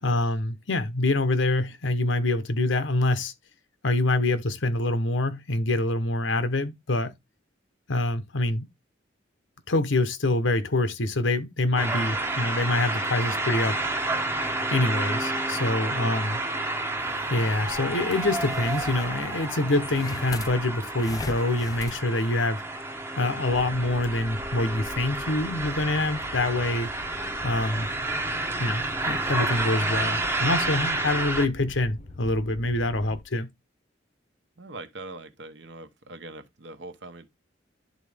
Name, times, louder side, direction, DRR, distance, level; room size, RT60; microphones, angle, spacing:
voice 1, 0.0-3.3 3.8-7.1 7.9-8.7 9.7-13.8 14.7-16.4 17.3-22.6 23.2-26.9 27.4-27.9 28.6-33.5, left 2 dB, 90° left, 1.0 m, -25 dB
sound 1, 11.8-31.5, right 2 dB, 15° right, 0.8 m, -30 dB
voice 2, 12.0-12.4 15.9-16.8 34.6-37.3, right 2 dB, 65° right, 1.0 m, -43 dB
sound 2, 17.0-22.0, left 3 dB, 20° left, 0.3 m, -41 dB
sound 3, 23.5-33.2, left 1 dB, 35° left, 0.7 m, -44 dB
11.0 x 3.8 x 3.4 m
head